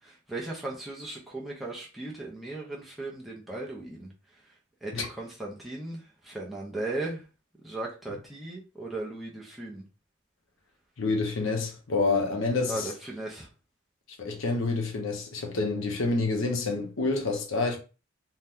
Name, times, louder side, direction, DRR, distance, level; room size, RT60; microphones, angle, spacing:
voice 1, 0.0-4.1 4.8-7.2 7.6-9.8 12.7-13.5, right 2 dB, ahead, 0.6 m, -37 dB
voice 2, 11.0-12.9 14.2-17.8, left 3 dB, 80° left, 0.7 m, -28 dB
2.7 x 2.2 x 3.4 m
head